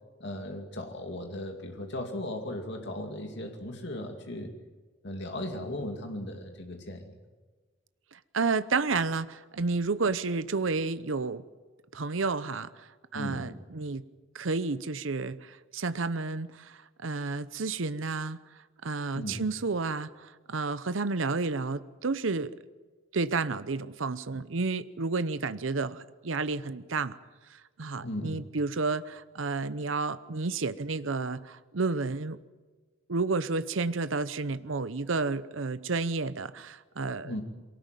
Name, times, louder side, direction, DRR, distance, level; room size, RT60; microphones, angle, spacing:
voice 1, 0.2-4.5 5.0-7.1 13.1-13.6 19.1-19.5 28.0-28.4 37.2-37.4, left 1 dB, 60° left, 4 dB, 2.5 m, -37 dB
voice 2, 8.1-11.4 11.9-14.0 14.3-18.4 18.8-22.5 23.1-27.2 27.5-32.4 33.1-37.4, right 3 dB, 80° right, 14 dB, 0.8 m, -31 dB
23.5 x 18.5 x 9.2 m, 1.3 s
head